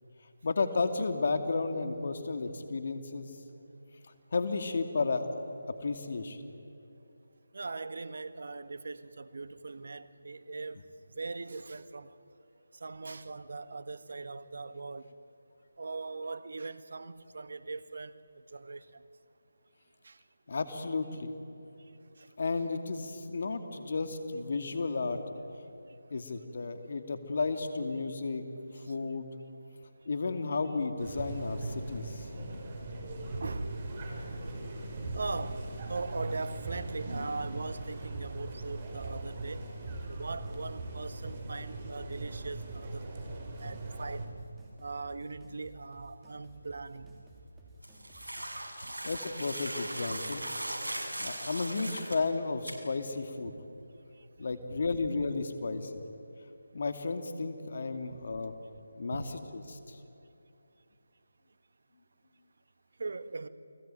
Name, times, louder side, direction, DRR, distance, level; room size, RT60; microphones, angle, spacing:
voice 1, 0.4-3.3 4.3-5.4 5.7-6.4 20.5-21.3 22.4-25.2 26.1-28.4 28.7-29.3 30.1-32.3 48.4-48.5 48.8-50.4 51.2-53.5 54.4-56.0 56.7-58.5 59.0-60.0, left 4 dB, 50° left, 8 dB, 2.6 m, -33 dB
voice 2, 7.5-10.8 11.2-12.1 12.8-15.1 15.8-18.1 18.5-19.0 20.0-20.2 22.2-22.3 33.4-33.8 35.1-39.6 40.1-43.2 43.5-44.3 44.8-47.2 48.8-48.9 50.1-50.2 53.5-53.6 54.7-55.0 59.1-59.3 63.0-63.5, right 3 dB, 60° right, 13 dB, 1.6 m, -40 dB
sound 1, 31.0-44.3, right 2 dB, 30° right, 5.0 m, -40 dB
sound 2, 35.7-48.3, right 1 dB, 10° right, 3.8 m, -55 dB
sound 3, 47.8-52.2 52.7-52.8, right 1 dB, 85° right, 6.3 m, -38 dB
29.5 x 20.5 x 9.2 m, 2.7 s
figure-of-eight pair, 160°, 0 cm